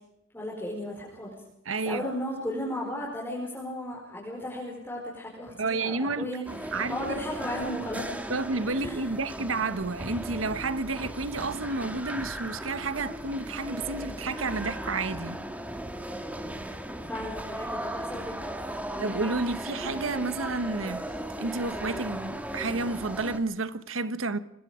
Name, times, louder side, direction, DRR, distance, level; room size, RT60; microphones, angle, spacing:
voice 1, 0.3-1.3 1.8-8.2 8.8-9.0 17.1-18.5 18.9-19.0, left 1 dB, 10° left, 4.9 m, -35 dB
voice 2, 1.7-2.0 5.6-6.3 6.7-7.2 8.3-15.4 19.0-21.1 21.4-24.4, right 3 dB, 85° right, 1.3 m, -31 dB
sound 1, 6.5-23.4, right 1 dB, 10° right, 1.9 m, -37 dB
25.0 x 21.0 x 5.1 m
head